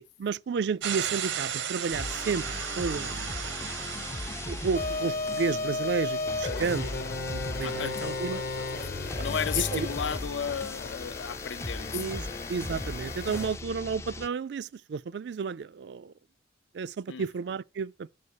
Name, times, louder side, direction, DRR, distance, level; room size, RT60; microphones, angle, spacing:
voice 1, 0.0-3.4 4.5-8.4 9.7-9.9 11.9-12.2 12.5-16.1 16.7-18.1, right 5 dB, 65° right, 0.3 m, -32 dB
sound 1, 0.8-5.2, right 9 dB, 80° right, 0.8 m, -35 dB
sound 2, 1.9-14.3, left 2 dB, 15° left, 0.3 m, -38 dB
sound 3, 4.7-13.6, left 3 dB, 50° left, 0.9 m, -35 dB
voice 2, 7.6-12.4 17.1-17.3, left 8 dB, 75° left, 0.5 m, -35 dB
7.1 x 4.1 x 6.5 m
head